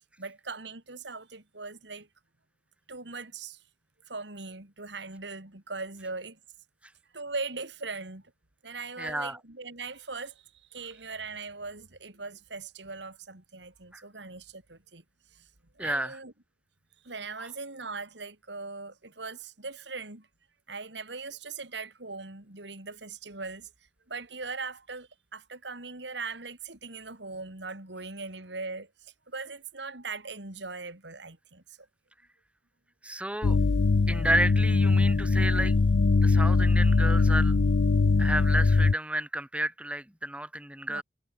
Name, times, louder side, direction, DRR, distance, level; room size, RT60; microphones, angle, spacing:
voice 1, 0.2-2.1 2.9-3.6 4.1-6.4 7.1-8.2 8.6-15.0 15.3-15.5 15.8-16.3 17.0-20.3 20.7-23.7 24.1-31.9 40.9-41.0, right 4 dB, 75° right, 3.5 m, -40 dB
voice 2, 9.0-9.4 13.9-14.0 15.8-16.2 33.0-33.6 34.1-35.8 36.2-37.5 38.2-41.0, right 1 dB, 5° right, 4.7 m, -31 dB
sound 1, 33.4-38.9, left 3 dB, 75° left, 0.6 m, -22 dB
head